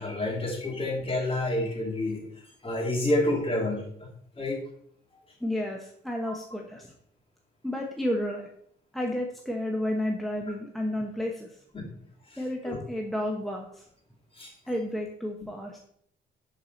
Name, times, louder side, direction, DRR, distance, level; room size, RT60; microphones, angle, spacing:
voice 1, 0.0-4.1 4.4-4.6 6.3-6.4 11.7-11.9 12.3-12.8 14.3-14.5 15.4-15.5, left 1 dB, 30° left, -1 dB, 3.0 m, -29 dB
voice 2, 5.4-6.9 7.6-8.5 8.9-11.5 12.4-13.8 14.7-15.8, left 1 dB, ahead, 0 dB, 1.1 m, -31 dB
10.5 x 4.9 x 4.1 m, 0.67 s
cardioid pair, 90°, 20 cm